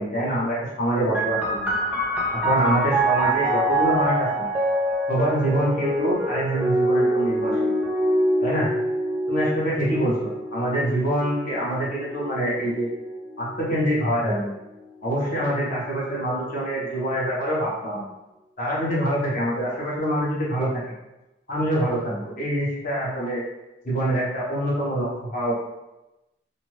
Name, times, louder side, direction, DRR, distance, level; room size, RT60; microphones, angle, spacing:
voice 1, 0.0-1.6 2.4-4.3 5.1-7.6 8.4-8.7 9.3-10.1 10.5-12.9 13.4-14.5 15.0-18.0 18.6-20.8 21.5-23.4 23.8-25.5, right 1 dB, 50° left, -7 dB, 1.1 m, -25 dB
sound 1, 1.1-14.4 15.2-16.0, right 1 dB, 10° right, 0.5 m, -25 dB
2.6 x 2.6 x 3.1 m, 0.98 s
head